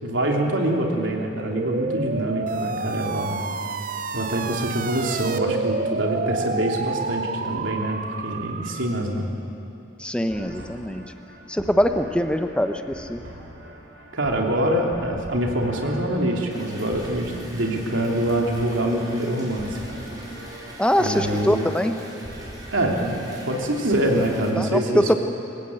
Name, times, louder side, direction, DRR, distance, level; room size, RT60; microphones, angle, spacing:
voice 1, 0.0-3.4 4.1-9.3 14.1-20.0 21.0-21.7 22.7-25.2, right 1 dB, 75° right, 0 dB, 3.1 m, -25 dB
sound 1, 1.6-9.0, right 4 dB, 45° right, 0.6 m, -29 dB
voice 2, 10.0-11.1 11.5-13.2 20.8-21.9 24.6-25.2, equal, 5° left, 7 dB, 0.8 m, -23 dB
sound 2, 10.3-24.4, right 1 dB, 60° right, 3.4 m, -42 dB
sound 3, 16.5-24.5, right 1 dB, 20° right, 3.8 m, -43 dB
26.0 x 15.5 x 8.8 m, 2.9 s
head